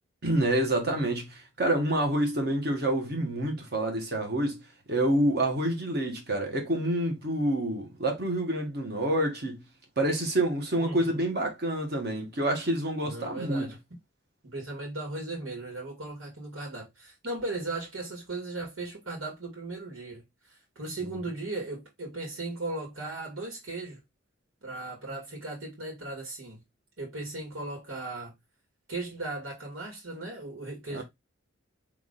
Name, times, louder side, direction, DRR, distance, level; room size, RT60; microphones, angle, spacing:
voice 1, 0.2-4.6 4.9-9.6 10.0-13.7 30.9-31.0, right 1 dB, 55° right, 1.4 m, -27 dB
voice 2, 10.8-11.3 13.0-13.8 14.4-24.0 24.6-26.6 27.0-28.3 28.9-31.0, right 2 dB, 90° right, 2.3 m, -37 dB
3.7 x 3.1 x 3.8 m
head